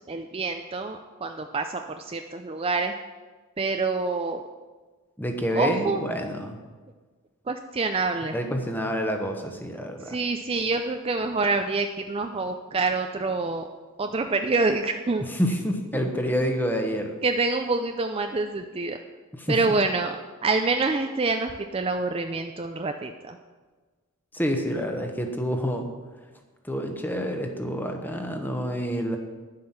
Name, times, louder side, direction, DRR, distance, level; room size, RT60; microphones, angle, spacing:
voice 1, 0.1-2.9 3.6-4.4 5.5-6.0 7.5-8.3 10.1-13.7 14.0-15.2 15.9-16.0 17.2-19.0 19.5-20.2 20.4-23.4, right 3 dB, 25° right, 6 dB, 0.4 m, -26 dB
voice 2, 5.2-6.6 8.3-10.2 15.2-17.1 19.3-19.8 24.3-25.9 26.6-29.2, equal, 10° left, 4 dB, 1.0 m, -28 dB
10.5 x 7.7 x 5.8 m, 1.3 s
head